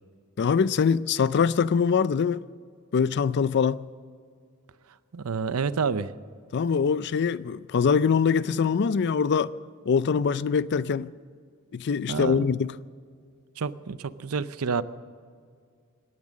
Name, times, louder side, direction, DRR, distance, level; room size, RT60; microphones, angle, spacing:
voice 1, 0.4-2.4 2.9-3.9 6.5-9.5 9.9-11.1 11.7-12.7, left 6 dB, 50° left, 0.4 m, -23 dB
voice 2, 5.1-6.1 12.1-12.5 13.6-14.8, right 5 dB, 80° right, 0.6 m, -28 dB
18.0 x 11.0 x 6.4 m
head